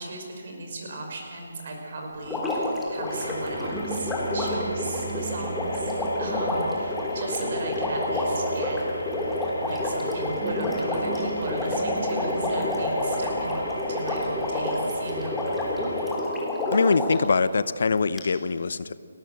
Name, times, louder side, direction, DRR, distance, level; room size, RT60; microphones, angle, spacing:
voice 1, 0.0-5.9 6.2-8.8 9.6-13.6 13.9-15.4, right 2 dB, 45° right, 2 dB, 5.4 m, -36 dB
sound 1, 2.1-16.0, right 3 dB, 25° right, 4.6 m, -40 dB
Water, 2.3-17.3 18.2-18.3, left 1 dB, 5° left, 3.2 m, -28 dB
sound 2, 3.1-16.1, right 1 dB, 85° left, 5.2 m, -40 dB
voice 2, 16.7-18.9, left 4 dB, 55° left, 16 dB, 0.7 m, -23 dB
29.5 x 13.5 x 7.8 m, 2.3 s
figure-of-eight pair, 145°, 0 cm